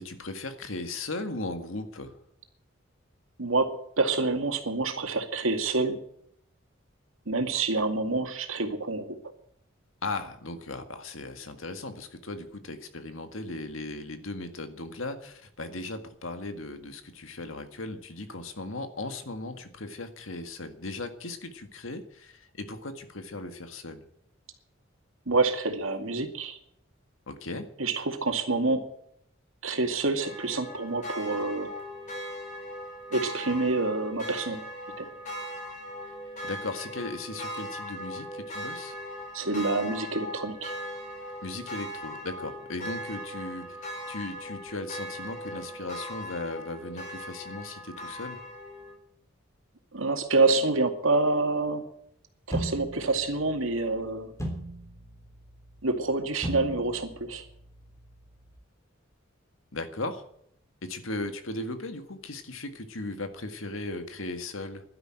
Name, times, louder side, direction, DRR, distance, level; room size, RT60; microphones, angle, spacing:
voice 1, 0.0-2.1 10.0-24.0 27.3-27.7 36.4-39.0 41.4-48.4 59.7-60.2 60.8-64.8, left 2 dB, 85° left, 8 dB, 1.9 m, -37 dB
voice 2, 3.4-6.0 7.3-9.2 25.3-26.6 27.8-28.8 29.6-31.7 33.1-34.6 35.0-35.1 39.3-40.7 49.9-51.8 52.5-54.3 55.8-57.5, right 3 dB, 85° right, 5 dB, 2.3 m, -27 dB
sound 1, 30.2-48.9, equal, 35° left, 5.0 m, -39 dB
sound 2, 52.5-58.6, right 1 dB, 15° left, 3.4 m, -39 dB
12.0 x 10.5 x 8.9 m, 0.69 s
head